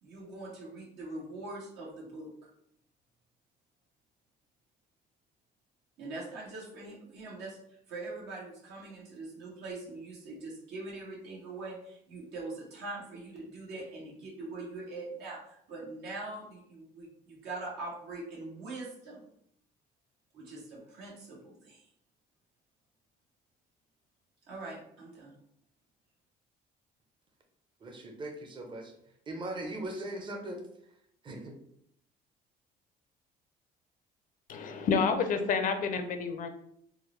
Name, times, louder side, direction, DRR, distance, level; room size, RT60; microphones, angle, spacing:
voice 1, 0.0-2.5 6.0-19.2 20.3-21.9 24.5-25.3, right 2 dB, 80° right, -4 dB, 1.3 m, -43 dB
voice 2, 27.8-28.9 29.3-30.6 31.2-31.6, right 1 dB, 30° right, 2 dB, 0.6 m, -39 dB
voice 3, 34.5-36.5, left 5 dB, 55° left, 7 dB, 0.5 m, -29 dB
3.5 x 2.0 x 3.0 m, 0.70 s
cardioid pair, 110°, 17 cm